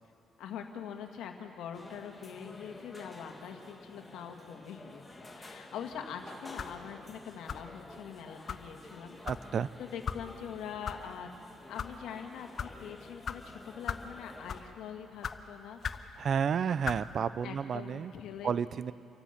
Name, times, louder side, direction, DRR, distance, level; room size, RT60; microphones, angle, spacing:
voice 1, 0.4-9.2 9.8-11.3 11.7-16.3 17.4-18.5, left 8 dB, 85° left, 4 dB, 1.8 m, -44 dB
sound 1, 1.7-14.6, left 2 dB, 15° left, 2.4 m, -51 dB
sound 2, 6.6-6.8 7.5-7.8 8.5-8.6 9.2-9.4 10.0-10.2 10.8-11.0 11.6-11.9 12.6-12.7 13.2-13.4 13.9-14.1 14.5-14.7 15.2-15.4 15.8-16.1 16.8-17.0, left 7 dB, 55° left, 0.8 m, -37 dB
voice 2, 9.2-9.7 16.2-18.1 18.4-18.9, right 7 dB, 55° right, 17 dB, 0.5 m, -31 dB
28.0 x 16.0 x 5.9 m, 2.8 s
cardioid pair, 90°, 0 cm